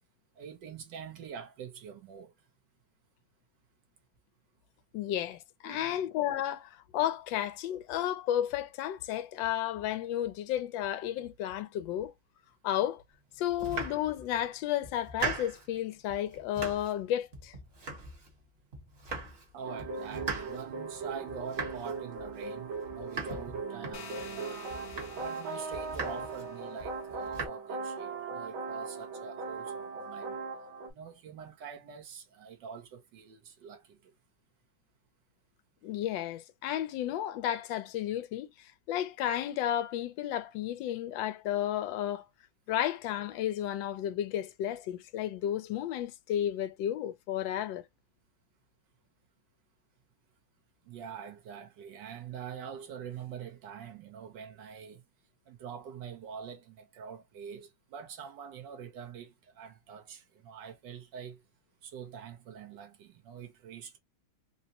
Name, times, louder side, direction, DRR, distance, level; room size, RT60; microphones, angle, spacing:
voice 1, 0.4-2.3 5.6-6.0 19.5-24.6 25.1-30.4 30.9-34.1 50.8-55.0 55.5-61.4 61.8-64.0, right 7 dB, 65° right, 1.4 m, -45 dB
voice 2, 4.9-12.1 12.6-13.0 13.4-17.5 35.8-42.2 42.7-47.8, left 11 dB, 75° left, 1.2 m, -32 dB
Domestic sounds home sounds, 13.5-14.4 14.8-15.7 16.1-17.0 17.3-18.4 18.7-19.5 19.8-24.3 24.7-25.4 25.7-26.5 26.8-27.5, right 4 dB, 35° right, 1.2 m, -40 dB
sound 1, 19.6-30.9, right 4 dB, 80° right, 1.9 m, -39 dB
sound 2, 23.9-26.8, left 6 dB, 55° left, 1.0 m, -50 dB
4.0 x 2.1 x 2.8 m
omnidirectional pair, 2.2 m